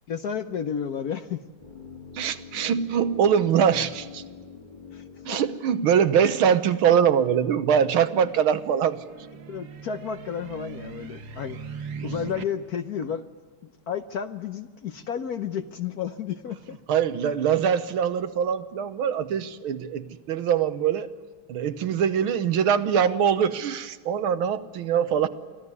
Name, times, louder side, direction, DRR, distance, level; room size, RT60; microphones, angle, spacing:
voice 1, 0.1-1.4 4.9-5.4 9.5-11.6 12.0-13.3 13.6-16.8, left 7 dB, 60° left, 9 dB, 1.1 m, -32 dB
sound 1, 1.6-7.6 7.9-8.0, left 5 dB, 20° left, 1.8 m, -45 dB
voice 2, 2.2-4.2 5.3-9.0 16.9-21.1 21.5-25.3, right 8 dB, 80° right, 11 dB, 1.9 m, -23 dB
sound 2, 7.5-12.4, right 6 dB, 65° right, 2.1 m, -40 dB
25.0 x 15.0 x 9.6 m, 1.5 s
omnidirectional pair, 2.3 m